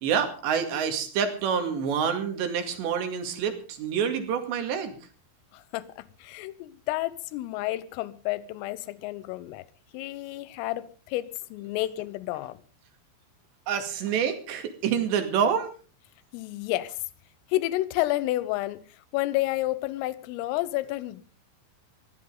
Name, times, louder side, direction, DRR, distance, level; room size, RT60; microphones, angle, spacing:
voice 1, 0.0-5.0 13.7-15.7, right 7 dB, 65° right, 4.1 m, -27 dB
voice 2, 5.5-9.7 9.9-12.6 16.3-17.0 17.5-18.8 19.1-21.2, left 17 dB, 80° left, 3.5 m, -30 dB
20.0 x 15.5 x 3.8 m
omnidirectional pair, 5.9 m